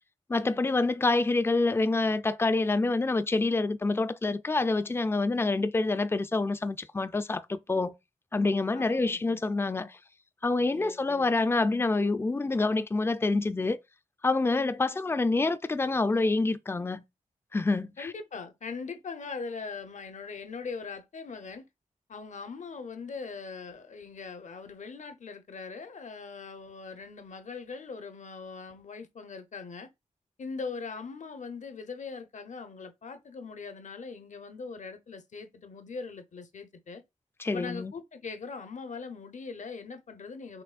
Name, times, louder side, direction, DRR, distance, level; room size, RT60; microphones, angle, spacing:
voice 1, 0.3-7.9 8.3-10.0 10.4-13.8 14.2-17.0 17.5-18.1 37.4-37.9, left 3 dB, 15° left, 0.4 m, -27 dB
voice 2, 8.7-9.4 10.7-11.3 18.0-21.6 22.1-29.9 30.4-37.0 37.4-40.6, left 4 dB, 60° left, 0.8 m, -41 dB
5.9 x 3.1 x 2.4 m
cardioid pair, 60°, 14 cm